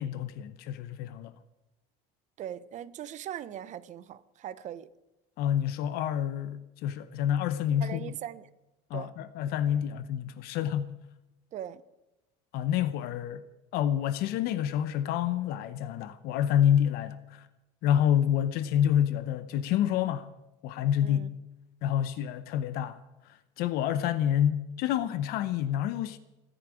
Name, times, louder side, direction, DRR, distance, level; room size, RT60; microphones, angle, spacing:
voice 1, 0.0-1.3 5.4-8.2 8.9-11.0 12.5-13.4 13.7-17.5 17.8-20.3 20.6-21.3 21.8-23.0 23.6-26.2, left 10 dB, 60° left, 0.8 m, -28 dB
voice 2, 2.4-4.9 7.8-8.5 8.9-9.1 11.5-11.8 21.0-21.3, right 10 dB, 40° right, 1.0 m, -40 dB
27.0 x 10.0 x 5.0 m
supercardioid pair, 125°, 18 cm